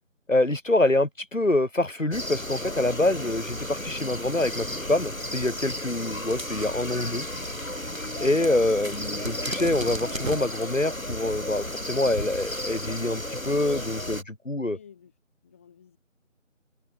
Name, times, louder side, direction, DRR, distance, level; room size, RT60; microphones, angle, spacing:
voice 1, 0.3-7.2 8.2-14.8, left 2 dB, 70° left, 3.9 m, -26 dB
sound 1, 2.1-14.2, left 1 dB, 90° left, 6.1 m, -34 dB
sound 2, 5.3-10.8, right 1 dB, 75° right, 5.3 m, -39 dB
voice 2, 14.7-15.1 15.4-16.0, left 7 dB, 10° left, 4.6 m, -52 dB
figure-of-eight pair, 170°, 40 cm